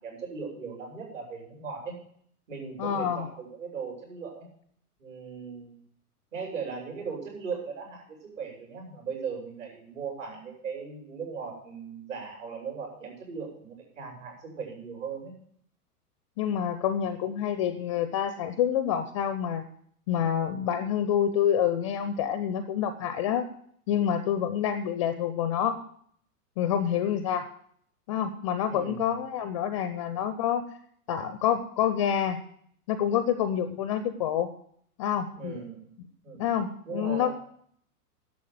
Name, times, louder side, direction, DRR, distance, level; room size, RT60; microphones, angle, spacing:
voice 1, 0.0-1.9 2.5-4.5 5.0-5.8 6.3-15.3 28.7-29.2 35.3-35.9 36.2-36.5 36.8-37.4, right 5 dB, 55° right, 0 dB, 6.5 m, -38 dB
voice 2, 2.8-3.3 16.4-19.6 20.1-23.5 23.9-25.8 26.6-27.4 28.1-30.6 31.1-32.4 32.9-34.5 35.0-35.6 36.4-37.3, left 9 dB, 20° left, 11 dB, 0.5 m, -27 dB
11.0 x 7.3 x 7.6 m, 0.63 s
figure-of-eight pair, 105°, 46 cm